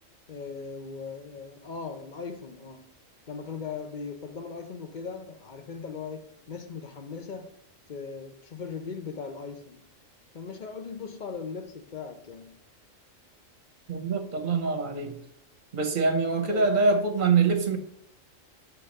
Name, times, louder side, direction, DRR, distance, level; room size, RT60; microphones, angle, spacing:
voice 1, 0.3-2.9 3.3-7.5 7.9-9.8 10.3-12.6 16.5-16.7, left 5 dB, 45° left, 0.7 m, -39 dB
voice 2, 13.9-15.2 15.7-17.8, right 4 dB, 40° right, 0.9 m, -24 dB
8.7 x 3.3 x 6.3 m
omnidirectional pair, 1.3 m